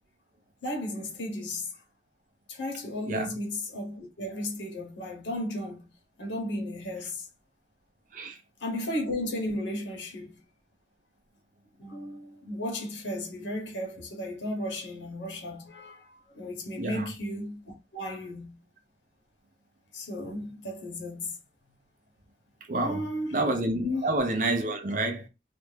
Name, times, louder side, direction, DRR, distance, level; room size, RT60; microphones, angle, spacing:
voice 1, 0.6-1.7 2.5-5.9 6.2-7.3 8.6-10.4 11.8-17.6 17.9-18.5 19.9-21.4 22.7-23.4 23.8-24.1, left 1 dB, 80° left, 0.9 m, -34 dB
voice 2, 16.8-17.1 22.7-23.0 23.3-25.3, right 2 dB, 45° right, 0.5 m, -28 dB
2.5 x 2.1 x 3.2 m
head